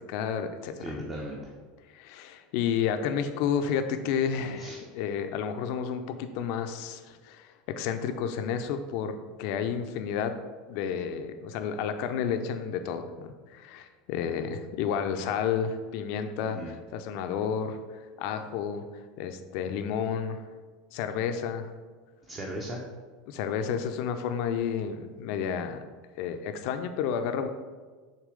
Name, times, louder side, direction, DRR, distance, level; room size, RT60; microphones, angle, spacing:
voice 1, 0.0-1.0 1.9-10.3 10.7-18.8 19.2-20.4 20.9-21.7 23.3-25.8 26.2-27.5, left 7 dB, 55° left, 8 dB, 0.5 m, -31 dB
voice 2, 0.8-1.5 4.6-4.8 16.4-16.7 22.2-22.8, right 1 dB, 30° right, 0 dB, 0.8 m, -37 dB
6.5 x 3.0 x 4.9 m, 1.4 s
figure-of-eight pair, 75°, 0 cm